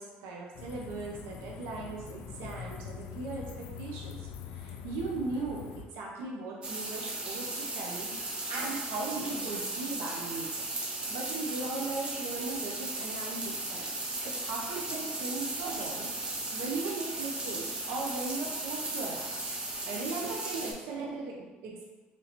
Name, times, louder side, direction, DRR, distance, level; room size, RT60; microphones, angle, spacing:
voice 1, 0.0-10.5 11.1-14.0 14.2-19.3 19.8-21.8, right 3 dB, 85° right, -1 dB, 0.6 m, -38 dB
sound 1, 0.5-5.8, left 7 dB, 85° left, 0.4 m, -43 dB
sound 2, 6.6-20.7, right 2 dB, 25° right, 0.6 m, -36 dB
3.1 x 2.8 x 4.0 m, 1.2 s
cardioid pair, 135°, 4 cm